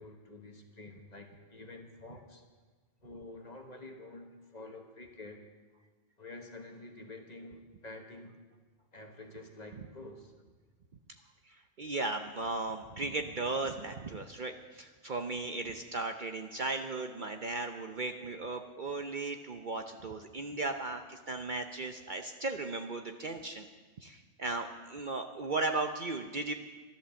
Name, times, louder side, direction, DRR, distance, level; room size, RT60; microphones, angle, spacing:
voice 1, 0.0-2.4 3.0-5.4 6.2-8.4 8.9-10.3 15.7-15.8, left 2 dB, 35° left, 4 dB, 1.4 m, -48 dB
voice 2, 11.5-23.7 24.0-26.5, right 3 dB, 45° right, 5 dB, 0.8 m, -36 dB
12.5 x 11.5 x 7.0 m, 1.3 s
omnidirectional pair, 1.3 m